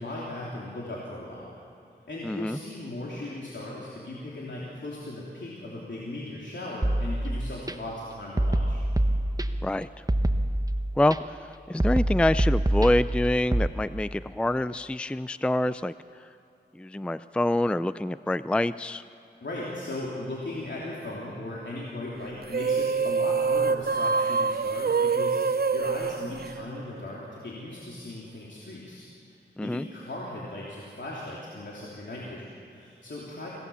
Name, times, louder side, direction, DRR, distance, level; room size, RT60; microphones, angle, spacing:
voice 1, 0.0-1.5 2.1-8.8 19.4-29.4 29.6-33.5, left 1 dB, 85° left, -5 dB, 3.2 m, -38 dB
voice 2, 2.2-2.6 9.6-9.9 11.0-15.9 16.8-19.0 29.6-29.9, left 1 dB, 5° left, 14 dB, 0.4 m, -26 dB
sound 1, 6.8-7.7 8.4-9.7 10.1-11.2 11.8-13.7, right 1 dB, 20° right, 1.0 m, -25 dB
sound 2, 22.4-27.2, right 5 dB, 60° right, 0.5 m, -26 dB
25.5 x 17.5 x 7.1 m, 2.8 s
wide cardioid pair, 55°, 18 cm